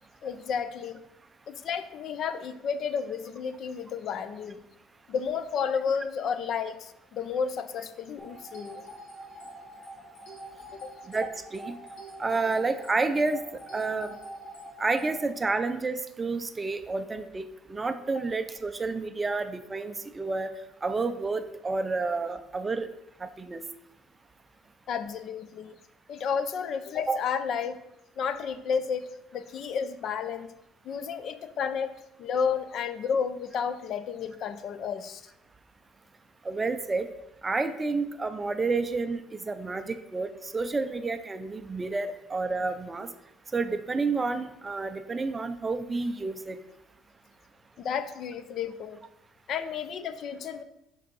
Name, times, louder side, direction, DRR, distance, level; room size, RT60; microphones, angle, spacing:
voice 1, 0.2-1.0 1.5-4.6 5.1-8.9 10.8-10.9 18.2-18.3 24.9-25.8 26.1-27.8 28.2-30.5 30.8-31.9 32.2-35.2 47.8-49.0 49.5-50.6, left 6 dB, 45° left, 12 dB, 0.5 m, -32 dB
sound 1, 8.2-15.2, equal, 90° left, 2.4 m, -45 dB
voice 2, 11.1-11.8 12.2-13.4 13.7-14.1 14.8-17.4 17.7-20.5 20.8-22.9 23.2-23.6 27.1-27.2 36.5-37.1 37.4-39.2 39.5-43.1 43.5-46.6, right 3 dB, 15° right, 9 dB, 0.4 m, -30 dB
5.3 x 5.2 x 5.4 m, 0.87 s
cardioid pair, 150°, 0 cm